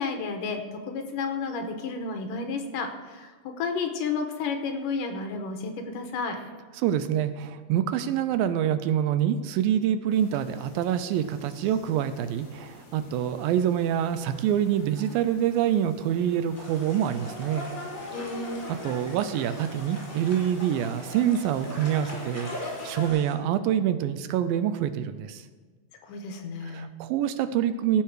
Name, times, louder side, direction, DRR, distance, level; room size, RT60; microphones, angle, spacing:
voice 1, 0.0-3.3 3.6-6.4 18.1-18.7 26.0-26.9, left 4 dB, 70° left, 5 dB, 2.4 m, -31 dB
voice 2, 6.8-17.7 18.8-25.4 26.6-28.0, right 10 dB, 80° right, 11 dB, 2.3 m, -26 dB
sound 1, 10.1-23.1, left 2 dB, 45° left, 3.3 m, -44 dB
sound 2, 16.5-23.3, left 1 dB, 5° left, 2.5 m, -42 dB
16.0 x 6.9 x 4.8 m, 1.4 s
omnidirectional pair, 4.2 m